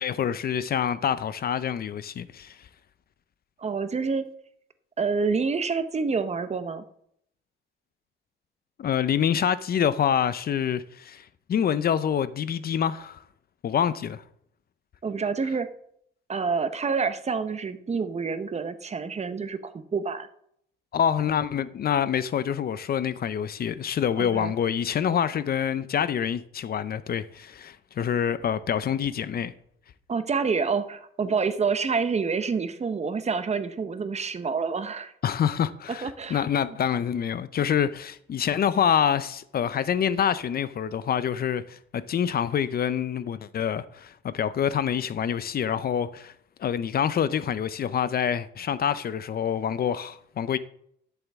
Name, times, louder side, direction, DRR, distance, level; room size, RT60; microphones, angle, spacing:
voice 1, 0.0-2.7 8.8-13.2 13.6-14.2 20.9-29.5 35.2-46.3 46.6-50.6, left 8 dB, 50° left, 0.6 m, -26 dB
voice 2, 3.6-4.2 5.0-6.8 15.0-15.7 16.3-20.3 24.2-24.5 30.1-35.1 35.9-36.4, right 5 dB, 35° right, 0.9 m, -27 dB
12.5 x 7.0 x 3.6 m
cardioid pair, 90°, 20 cm